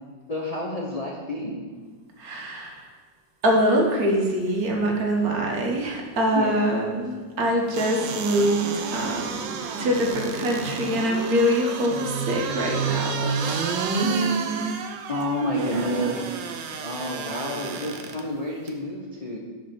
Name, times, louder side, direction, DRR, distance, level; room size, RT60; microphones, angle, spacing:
voice 1, 0.3-1.6 6.3-6.5 15.1-16.3 16.8-19.4, left 1 dB, 50° left, -3 dB, 0.4 m, -29 dB
voice 2, 2.2-2.8 3.4-8.7 8.9-9.5 9.8-13.7 13.9-14.3 15.4-16.3, equal, 55° right, 0 dB, 1.5 m, -24 dB
sound 1, 7.7-18.2 18.7-18.8, right 5 dB, 90° right, 1.4 m, -30 dB
5.4 x 5.0 x 5.8 m, 1.5 s
omnidirectional pair, 2.0 m